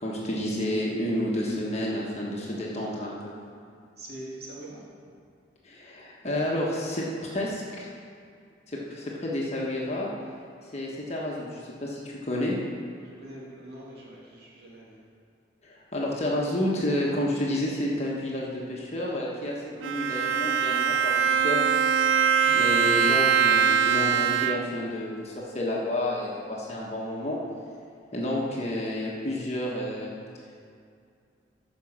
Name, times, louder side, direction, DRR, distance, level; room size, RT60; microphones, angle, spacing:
voice 1, 0.0-3.3 5.6-7.9 8.7-10.1 10.6-12.5 15.6-19.6 19.8-21.7 22.5-27.4 28.1-30.1, left 1 dB, 35° left, -4 dB, 1.3 m, -30 dB
voice 2, 4.0-4.8 13.0-15.0, right 1 dB, 60° right, -5 dB, 2.7 m, -43 dB
Bowed string instrument, 19.8-24.9, right 7 dB, 85° right, 0.4 m, -23 dB
14.0 x 5.4 x 6.1 m, 2.3 s
head